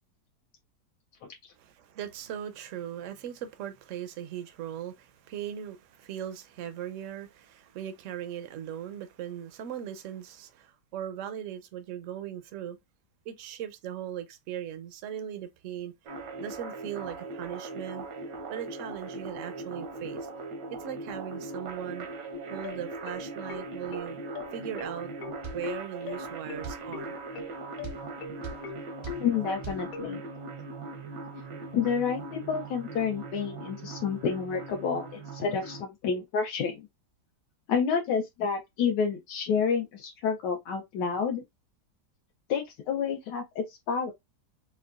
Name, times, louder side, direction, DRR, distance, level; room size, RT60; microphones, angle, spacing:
voice 1, 1.6-12.8 13.3-15.9 16.4-18.0 18.5-20.3 20.8-22.1 22.5-24.2 24.5-25.1 25.5-27.2, right 10 dB, 70° right, 0.7 m, -39 dB
sound 1, 16.1-35.8, right 3 dB, 85° right, 1.5 m, -40 dB
sound 2, 22.3-30.1, left 6 dB, 65° left, 1.0 m, -40 dB
sound 3, 25.4-25.6 26.6-26.8 27.8-28.0 28.4-28.6 29.0-29.2 29.6-29.8, right 4 dB, 35° right, 0.4 m, -38 dB
voice 2, 29.1-30.2 31.7-36.9 37.7-41.4 42.5-44.1, left 6 dB, 85° left, 1.3 m, -29 dB
4.6 x 2.2 x 2.3 m
omnidirectional pair, 1.8 m